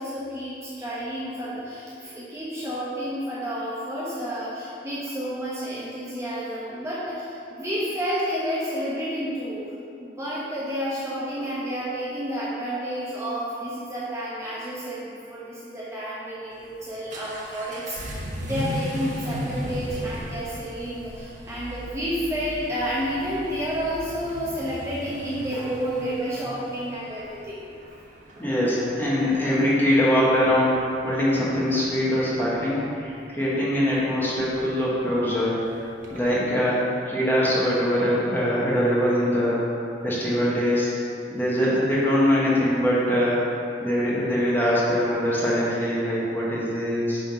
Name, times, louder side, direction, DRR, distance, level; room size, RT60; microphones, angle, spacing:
voice 1, 0.0-9.7 10.0-27.6, equal, 15° right, -9 dB, 1.2 m, -30 dB
Vehicle / Accelerating revving vroom, 16.5-36.3, equal, 45° right, 1.3 m, -38 dB
voice 2, 28.4-35.6 36.1-41.0 41.3-43.4 43.8-47.2, equal, 10° left, -8 dB, 1.9 m, -23 dB
9.4 x 4.4 x 5.7 m, 2.6 s
head